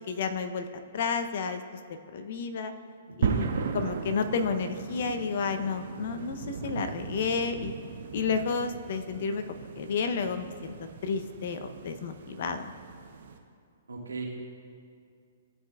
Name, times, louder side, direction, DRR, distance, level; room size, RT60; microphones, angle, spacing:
voice 1, 0.1-0.7 0.9-1.6 2.1-2.7 3.2-3.5 3.7-7.7 8.1-12.7, left 5 dB, 60° left, 8 dB, 0.6 m, -31 dB
voice 2, 3.1-3.5 13.9-14.2, right 4 dB, 85° right, -2 dB, 1.5 m, -39 dB
sound 1, 3.2-13.4, right 6 dB, 60° right, 0.7 m, -37 dB
14.0 x 4.8 x 2.3 m, 2.3 s
hypercardioid pair, 125°, 0 cm